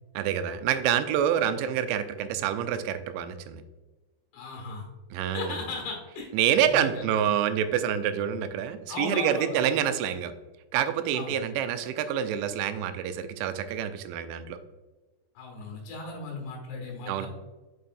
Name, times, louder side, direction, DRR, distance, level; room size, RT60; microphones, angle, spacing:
voice 1, 0.1-3.6 5.1-5.6 6.3-10.3 10.7-14.6 17.1-17.3, right 9 dB, 90° right, 10 dB, 2.9 m, -27 dB
voice 2, 4.3-4.9 5.3-6.3 6.6-7.1 8.9-9.7 11.1-11.4 15.4-17.3, left 4 dB, 70° left, 0 dB, 3.5 m, -37 dB
6.7 x 5.5 x 2.5 m, 1.2 s
omnidirectional pair, 5.2 m